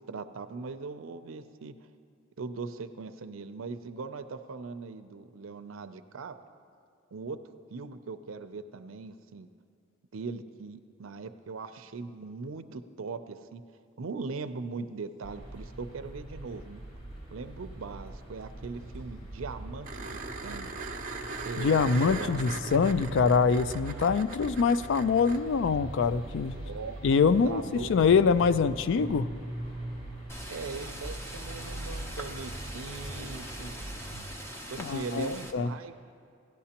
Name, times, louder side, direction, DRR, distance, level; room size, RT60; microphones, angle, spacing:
voice 1, 0.1-1.7 2.4-6.4 7.1-7.4 7.7-9.5 10.1-13.6 14.0-16.8 17.3-20.7 21.4-22.5 26.6-27.0 27.4-28.0 30.5-33.7 34.7-35.9, right 4 dB, 80° right, 10 dB, 0.5 m, -40 dB
sound 1, 15.2-34.2, right 1 dB, 90° left, 3.2 m, -42 dB
sound 2, 19.8-25.4 28.1-28.2, right 3 dB, 45° right, 0.7 m, -40 dB
voice 2, 21.6-26.6 27.0-29.3 34.8-35.7, left 5 dB, 65° left, 14 dB, 0.4 m, -24 dB
sound 3, 30.3-35.5, equal, 15° left, 0.8 m, -42 dB
17.0 x 11.5 x 2.9 m, 2.4 s
head